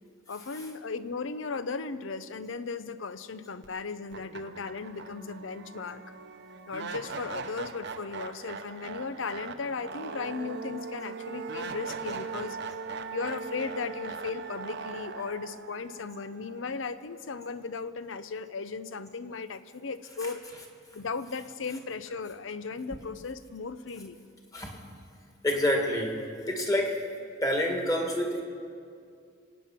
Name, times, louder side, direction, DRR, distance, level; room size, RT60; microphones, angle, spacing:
voice 1, 0.3-6.0 6.7-12.6 13.1-20.4 20.9-24.2, left 4 dB, 70° left, 13 dB, 0.6 m, -36 dB
sound 1, 3.6-3.7 4.1-17.2, right 4 dB, 60° right, 0.8 m, -40 dB
voice 2, 25.4-27.1 27.4-28.4, left 1 dB, 20° left, 1 dB, 1.9 m, -27 dB
24.5 x 9.2 x 5.8 m, 2.3 s
head